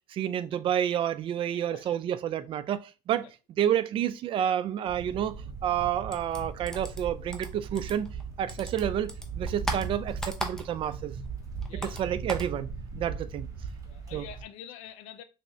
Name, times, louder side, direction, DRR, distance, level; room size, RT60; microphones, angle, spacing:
voice 1, 0.1-3.3 3.6-8.1 8.4-11.2 11.8-12.7 13.0-13.5 14.1-14.2, right 10 dB, 50° right, 0.4 m, -29 dB
sound 1, 4.9-14.4, right 5 dB, 30° right, 1.4 m, -38 dB
sound 2, 6.1-8.2 8.5-11.0 11.3-12.5, equal, 5° left, 0.7 m, -37 dB
voice 2, 11.7-12.1 13.1-13.2 13.8-15.2, left 9 dB, 85° left, 0.5 m, -46 dB
3.4 x 2.8 x 3.1 m
cardioid pair, 105°, 11 cm